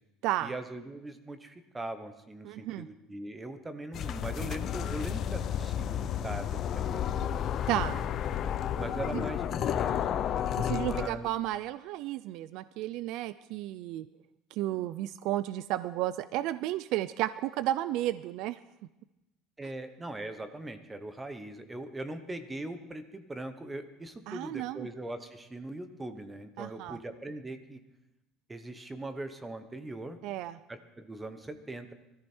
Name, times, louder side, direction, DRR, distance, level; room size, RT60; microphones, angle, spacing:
voice 1, 0.4-7.3 8.8-10.0 10.8-11.3 19.6-27.8 28.5-30.2 30.7-31.9, right 2 dB, 10° right, 9 dB, 0.9 m, -40 dB
voice 2, 2.4-2.9 7.7-8.0 9.1-9.2 10.6-14.1 14.5-18.6 24.3-24.9 26.6-27.0 30.2-30.6, right 14 dB, 55° right, 14 dB, 0.4 m, -33 dB
sound 1, 3.9-11.1, left 9 dB, 35° left, 0.6 m, -31 dB
20.0 x 14.0 x 4.5 m, 0.94 s
cardioid pair, 170°, 0 cm